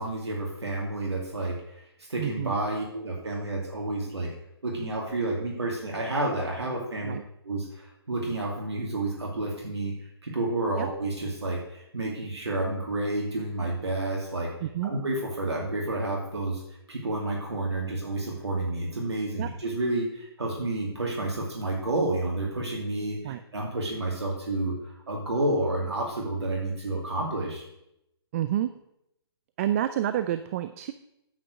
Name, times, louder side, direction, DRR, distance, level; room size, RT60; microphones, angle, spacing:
voice 1, 0.0-4.3 4.6-7.1 7.4-9.9 10.2-14.5 14.8-16.6 16.9-27.6, right 2 dB, 90° right, -1 dB, 2.5 m, -30 dB
voice 2, 2.2-2.5 7.0-7.2 10.8-10.9 14.6-14.9 19.4-19.5 23.2-23.4 28.3-28.7 29.6-30.9, right 11 dB, 35° right, 11 dB, 0.4 m, -28 dB
9.1 x 7.0 x 6.4 m, 0.81 s
hypercardioid pair, 145°, 14 cm